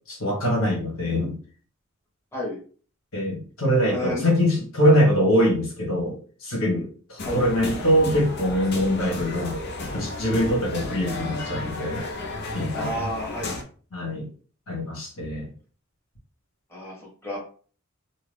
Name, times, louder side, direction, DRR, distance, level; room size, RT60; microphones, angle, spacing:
voice 1, 0.1-1.4 3.1-9.6 9.9-12.0 12.5-12.9 13.9-14.3 14.7-15.5, equal, 80° left, -2 dB, 1.4 m, -23 dB
voice 2, 3.9-4.2 7.2-7.4 8.0-8.2 12.7-13.6 16.7-17.4, left 1 dB, 10° left, -5 dB, 1.3 m, -31 dB
sound 1, 7.2-13.6, left 2 dB, 55° left, 0.6 m, -33 dB
2.9 x 2.3 x 3.3 m, 0.42 s
head